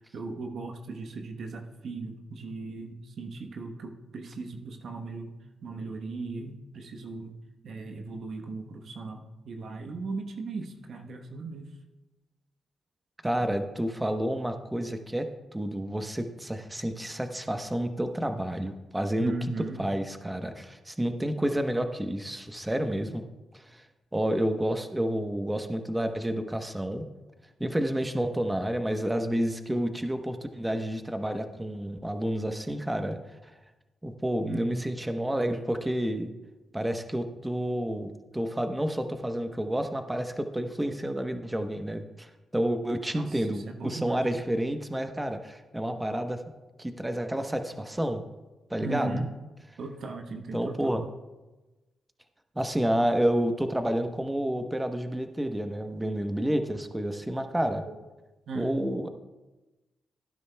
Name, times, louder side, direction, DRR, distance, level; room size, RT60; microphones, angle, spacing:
voice 1, 0.1-5.3 5.6-7.3 7.6-11.7 13.4-13.5 19.2-19.8 34.4-34.6 43.1-44.2 48.8-49.3 49.8-51.0 57.9-58.0 58.5-58.9, right 3 dB, 65° right, 4 dB, 1.1 m, -37 dB
voice 2, 13.2-19.3 19.8-23.2 23.5-23.8 24.1-27.0 27.6-33.2 34.0-36.3 36.7-46.4 46.8-48.3 48.7-49.2 50.5-51.0 52.5-57.9 58.5-59.1, right 1 dB, 15° right, 6 dB, 1.0 m, -30 dB
17.0 x 9.8 x 2.3 m, 1.1 s
hypercardioid pair, 45°, 0 cm